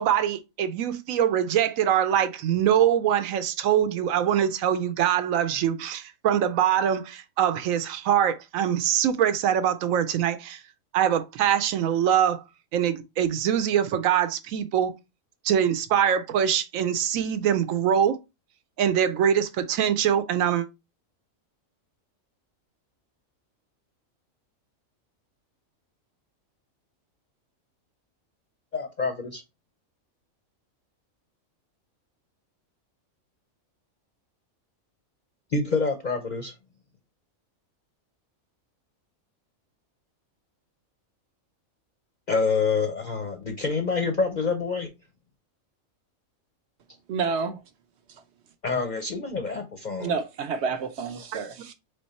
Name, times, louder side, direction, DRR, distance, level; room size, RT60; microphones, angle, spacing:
voice 1, 0.0-10.6 10.9-12.4 12.7-14.9 15.4-18.2 18.8-20.7, right 9 dB, 80° right, 1.0 m, -23 dB
voice 2, 28.7-29.4 35.5-36.5 42.3-44.9 48.6-50.1, left 4 dB, 50° left, 0.5 m, -27 dB
voice 3, 47.1-47.6 50.0-51.7, right 5 dB, 60° right, 0.8 m, -29 dB
3.8 x 3.2 x 4.1 m
omnidirectional pair, 1.4 m